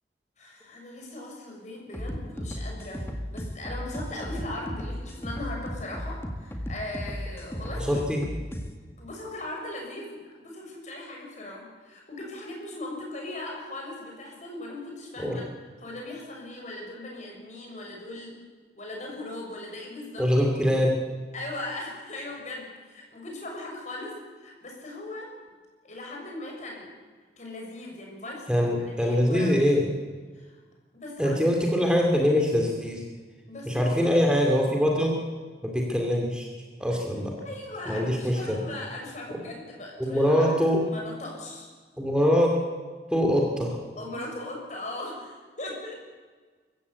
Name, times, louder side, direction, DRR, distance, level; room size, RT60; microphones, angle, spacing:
voice 1, 0.4-8.0 9.0-15.4 15.8-18.3 18.7-20.2 21.3-25.3 25.8-26.9 27.4-29.5 30.3-30.6 30.9-31.4 33.5-34.0 36.9-37.0 37.4-41.7 44.0-45.9, left 2 dB, 45° left, -1 dB, 6.7 m, -39 dB
sound 1, 1.9-8.7, equal, 15° left, 1.9 m, -35 dB
voice 2, 7.8-8.2 15.2-15.4 20.2-20.9 28.5-29.9 31.2-33.0 33.7-35.2 35.6-36.5 36.8-37.3 37.9-38.6 40.0-40.8 42.0-42.6 43.1-43.8, equal, 5° right, 0 dB, 2.5 m, -23 dB
24.0 x 15.0 x 8.3 m, 1.5 s
head